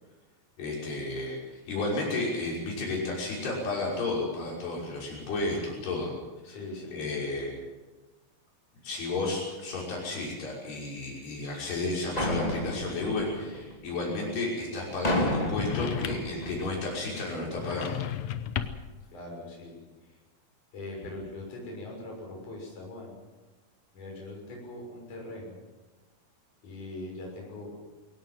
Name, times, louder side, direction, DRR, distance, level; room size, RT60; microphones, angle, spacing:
voice 1, 0.6-6.1 6.5-6.6 6.9-7.5 8.8-18.0, left 2 dB, 90° left, -3 dB, 8.0 m, -32 dB
voice 2, 6.4-7.3 18.6-18.7 19.1-20.2 20.7-23.2 23.9-25.6 26.6-27.8, left 2 dB, 50° left, -1 dB, 8.0 m, -41 dB
sound 1, 12.2-14.1 15.0-17.0, left 1 dB, 15° left, 1.7 m, -31 dB
sound 2, 15.5-16.4 17.5-19.0, left 10 dB, 75° left, 1.6 m, -34 dB
22.5 x 18.5 x 7.8 m, 1.2 s
omnidirectional pair, 4.5 m